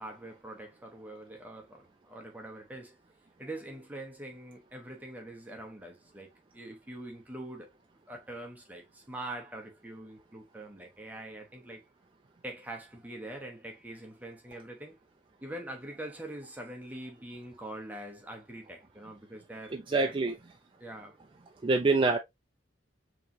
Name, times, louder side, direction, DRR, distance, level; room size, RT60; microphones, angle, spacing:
voice 1, 0.0-3.0 3.4-7.7 8.1-11.8 12.4-15.0 15.4-20.1 20.8-21.2, right 1 dB, 10° right, 0.9 m, -44 dB
voice 2, 19.9-20.3 21.6-22.2, right 3 dB, 25° right, 0.4 m, -25 dB
4.8 x 3.0 x 2.6 m
head